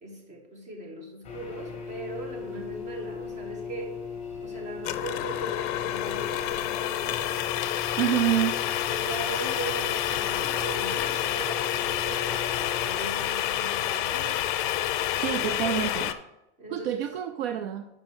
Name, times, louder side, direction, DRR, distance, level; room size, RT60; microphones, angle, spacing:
voice 1, 0.0-4.0 4.4-7.5 8.8-14.4 16.6-17.0, right 2 dB, 20° right, 1 dB, 1.6 m, -39 dB
sound 1, 1.2-13.0, left 6 dB, 20° left, 1.6 m, -38 dB
sound 2, 4.8-16.1, left 12 dB, 45° left, 0.6 m, -29 dB
voice 2, 8.0-8.6 15.2-16.1 16.7-17.9, right 11 dB, 60° right, 8 dB, 0.6 m, -27 dB
5.4 x 5.2 x 6.3 m, 0.91 s
supercardioid pair, 145°, 35 cm